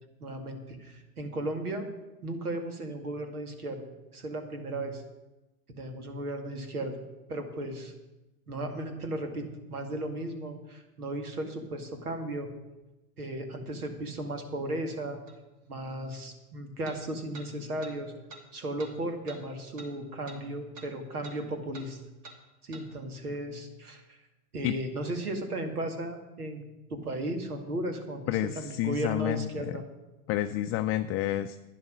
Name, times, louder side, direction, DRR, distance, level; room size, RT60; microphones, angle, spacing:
voice 1, 0.2-1.9 2.2-3.8 4.1-5.0 5.8-7.0 7.3-7.9 8.5-12.5 13.2-15.2 15.7-18.1 18.5-22.0 22.6-24.2 24.5-29.8, right 1 dB, 85° right, 6 dB, 2.1 m, -35 dB
sound 1, 15.3-15.4 16.8-17.0 17.3-17.5 17.8-17.9 18.3-18.4 18.8-18.9 19.3-19.4 19.8-19.9 20.3-20.4 20.7-20.9 21.2-21.4 21.7-21.9 22.2-22.4 22.7-22.9, right 3 dB, 45° right, 2.4 m, -47 dB
voice 2, 28.3-29.7 30.3-31.6, left 13 dB, 30° left, 8 dB, 0.5 m, -29 dB
11.0 x 10.0 x 6.1 m, 1.0 s
hypercardioid pair, 95°, 44 cm